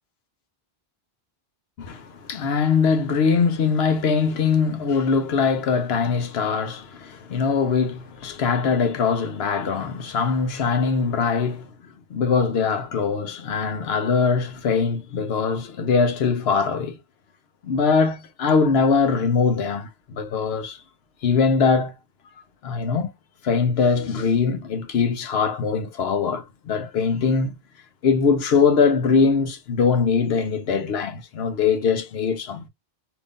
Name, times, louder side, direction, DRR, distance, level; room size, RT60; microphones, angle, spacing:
voice 1, 1.8-11.7 12.1-17.0 17.6-20.8 21.2-21.9 22.6-23.1 23.4-27.5 28.0-32.7, left 5 dB, 80° left, 1.0 m, -22 dB
2.9 x 2.5 x 3.5 m
omnidirectional pair, 1.0 m